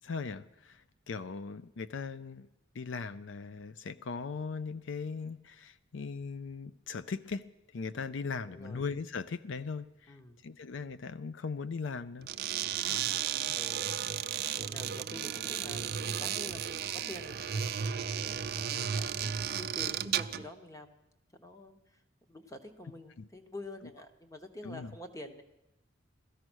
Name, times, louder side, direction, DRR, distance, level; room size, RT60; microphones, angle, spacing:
voice 1, 0.0-2.5 2.7-12.3 13.3-13.6 23.2-23.3 24.6-24.9, left 5 dB, 75° left, 14 dB, 0.5 m, -39 dB
voice 2, 8.5-8.8 10.1-10.4 12.8-13.2 13.5-13.9 14.5-15.8 16.1-18.5 18.9-20.9 21.3-22.0 22.3-25.4, left 1 dB, 15° left, 7 dB, 1.1 m, -47 dB
sound 1, 12.2-20.5, right 9 dB, 50° right, 0.5 m, -34 dB
17.0 x 13.5 x 6.3 m, 0.92 s
head